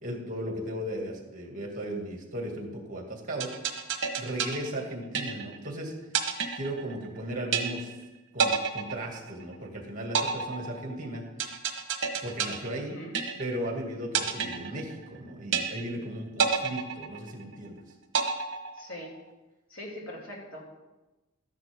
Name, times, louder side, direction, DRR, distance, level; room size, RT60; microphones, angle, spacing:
voice 1, 0.0-3.5 4.2-5.9 6.5-8.0 8.3-11.2 12.2-13.0 13.4-17.8, right 1 dB, 40° right, 1 dB, 2.3 m, -36 dB
sound 1, 3.4-5.7 6.1-7.2 7.5-8.1 8.4-9.7 10.2-13.7 14.2-15.2 15.5-16.1 16.4-17.7 18.1-19.2, right 6 dB, 60° right, 1.2 m, -29 dB
voice 2, 18.7-19.2 19.7-20.8, equal, 65° left, -3 dB, 3.3 m, -42 dB
13.0 x 10.5 x 3.7 m, 1.1 s
head